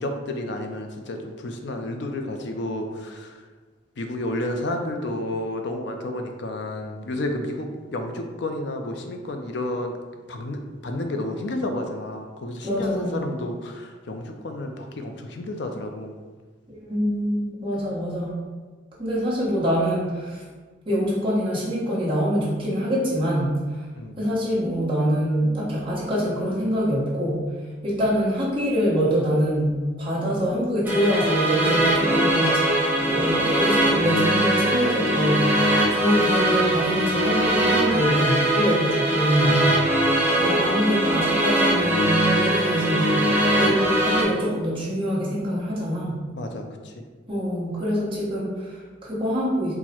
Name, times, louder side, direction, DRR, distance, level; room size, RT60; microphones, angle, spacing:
voice 1, 0.0-3.4 4.0-10.0 10.3-16.1 24.0-24.2 39.4-40.2 46.4-47.0, left 1 dB, 65° left, 4 dB, 0.5 m, -31 dB
voice 2, 12.6-13.2 16.7-18.4 19.0-20.4 20.8-23.5 24.2-27.5 27.8-32.6 33.0-39.7 40.4-43.3 43.6-46.2 47.3-49.8, equal, 30° right, -7 dB, 1.2 m, -24 dB
sound 1, 30.8-44.2, right 1 dB, 10° right, 1.0 m, -21 dB
4.5 x 2.2 x 4.3 m, 1.4 s
head